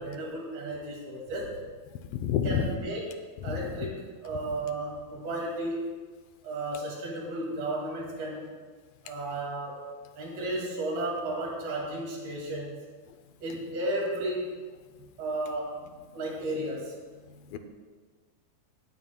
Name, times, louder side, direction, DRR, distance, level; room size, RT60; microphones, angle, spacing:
voice 1, 0.0-1.6 2.4-3.2 3.4-5.9 6.4-8.5 9.0-9.8 10.2-12.8 13.4-14.6 15.2-15.8 16.1-17.0, right 1 dB, 90° right, -2 dB, 4.3 m, -33 dB
voice 2, 2.1-2.6 17.5-17.6, left 9 dB, 85° left, 7 dB, 2.4 m, -27 dB
19.0 x 9.3 x 2.2 m, 1.5 s
omnidirectional pair, 4.3 m